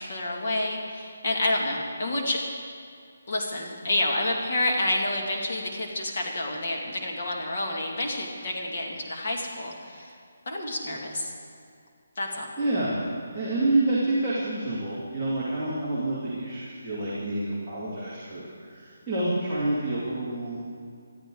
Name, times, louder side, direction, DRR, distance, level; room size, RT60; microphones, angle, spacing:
voice 1, 0.0-2.4 3.3-10.2 10.5-11.3 12.2-12.5, left 1 dB, 40° left, 0 dB, 2.2 m, -29 dB
voice 2, 12.6-13.0 13.3-20.6, right 2 dB, ahead, -16 dB, 2.3 m, -28 dB
20.5 x 13.0 x 3.9 m, 2.3 s
hypercardioid pair, 175°, 0 cm